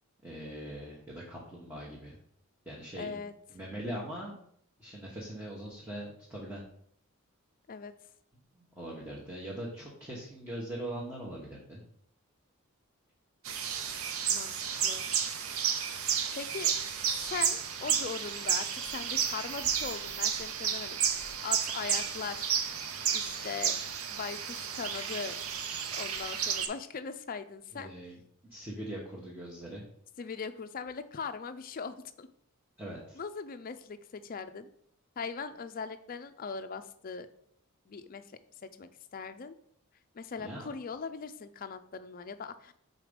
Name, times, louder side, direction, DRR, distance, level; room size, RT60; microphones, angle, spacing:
voice 1, 0.2-2.2 2.7-3.2 3.5-4.4 4.8-6.6 8.5-11.8 27.7-28.2 28.5-29.8 32.8-33.2 40.4-40.7, right 1 dB, 10° right, -4 dB, 1.0 m, -41 dB
voice 2, 3.0-3.3 7.7-7.9 14.3-14.5 14.8-15.1 16.4-16.7 17.1-22.5 23.1-23.8 24.1-25.4 25.9-27.9 30.2-32.3 33.1-34.7 35.2-37.3 37.9-38.2 38.8-39.6 40.1-42.7, left 5 dB, 40° left, 10 dB, 0.4 m, -40 dB
sound 1, 13.5-26.7, right 8 dB, 75° right, 0.6 m, -32 dB
5.0 x 4.0 x 5.0 m, 0.66 s
head